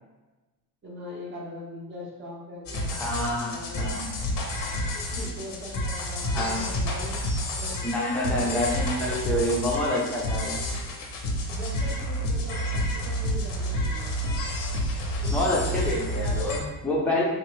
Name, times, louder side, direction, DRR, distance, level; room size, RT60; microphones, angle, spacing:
voice 1, 0.8-3.9 4.9-7.2 7.5-8.7 9.3-9.4 11.5-14.5 15.2-15.7, left 1 dB, 30° right, -5 dB, 0.8 m, -41 dB
sound 1, 2.7-16.6, equal, 55° left, 0.6 m, -29 dB
voice 2, 2.9-4.1 6.3-6.6 7.8-10.6 15.3-17.2, left 1 dB, 5° left, -5 dB, 0.5 m, -27 dB
3.5 x 2.0 x 3.1 m, 1.1 s
cardioid pair, 155°, 41 cm